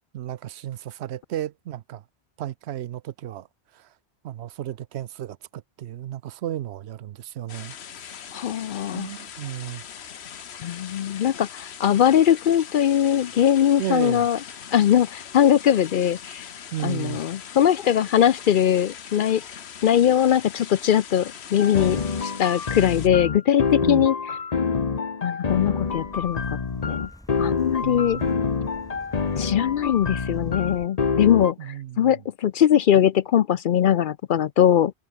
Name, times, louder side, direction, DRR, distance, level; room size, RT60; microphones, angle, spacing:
voice 1, 0.1-2.0 2.4-3.5 3.7-3.9 4.2-7.7 8.9-9.8 13.8-14.3 16.7-17.2 23.8-24.1 27.8-28.5 31.6-32.2, right 12 dB, 85° right, 0.9 m, -33 dB
sound 1, 7.5-23.1, left 8 dB, 80° left, 1.2 m, -41 dB
voice 2, 8.3-9.1 10.6-14.4 14.7-16.4 16.8-19.4 19.8-24.1 25.2-26.6 26.9-27.1 27.4-28.2 29.4-34.9, left 10 dB, 60° left, 0.6 m, -21 dB
sound 2, 21.6-31.5, left 5 dB, 40° left, 1.0 m, -27 dB
sound 3, 25.7-30.9, equal, 5° left, 6.3 m, -46 dB
omnidirectional pair, 1.1 m